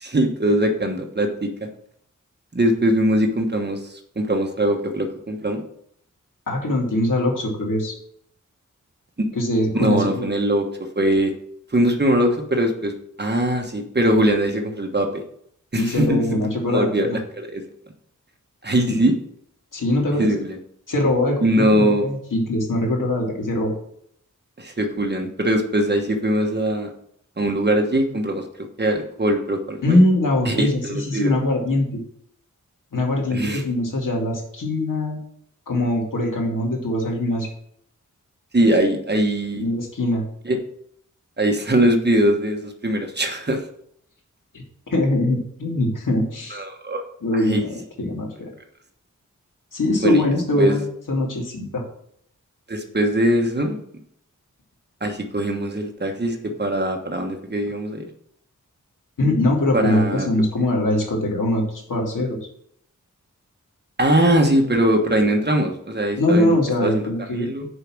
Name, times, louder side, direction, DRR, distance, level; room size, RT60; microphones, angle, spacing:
voice 1, 0.0-1.7 2.5-5.6 9.7-10.7 10.9-11.3 11.7-12.9 13.2-15.2 15.7-17.6 18.6-19.1 20.2-20.6 21.4-22.0 24.6-26.9 27.4-28.4 28.8-30.0 30.4-31.3 33.3-33.6 38.5-39.6 40.4-40.6 41.4-43.6 46.5-47.0 47.3-47.7 50.0-50.2 50.6-50.7 52.7-53.8 55.0-58.0 59.7-60.3 64.0-66.9 67.3-67.7, right 1 dB, 30° right, 3 dB, 1.2 m, -21 dB
voice 2, 6.5-7.9 9.3-10.2 15.8-17.2 18.9-19.0 19.7-20.3 20.9-23.7 29.8-32.0 32.9-35.2 35.7-37.5 39.5-40.2 44.5-46.6 47.2-48.5 49.7-50.8 51.1-51.8 59.2-62.4 66.2-67.5, left 1 dB, 80° left, -1 dB, 2.3 m, -22 dB
6.7 x 4.9 x 6.1 m, 0.68 s
wide cardioid pair, 100°, 32 cm